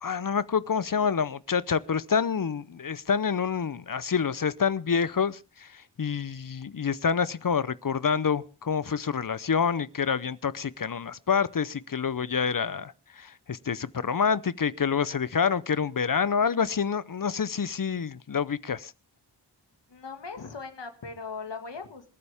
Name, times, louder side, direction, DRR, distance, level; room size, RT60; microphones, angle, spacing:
voice 1, 0.0-18.9, left 6 dB, 50° left, 0.7 m, -27 dB
voice 2, 19.9-22.1, left 4 dB, 85° left, 2.0 m, -39 dB
26.5 x 9.7 x 3.5 m
wide cardioid pair, 55°, 42 cm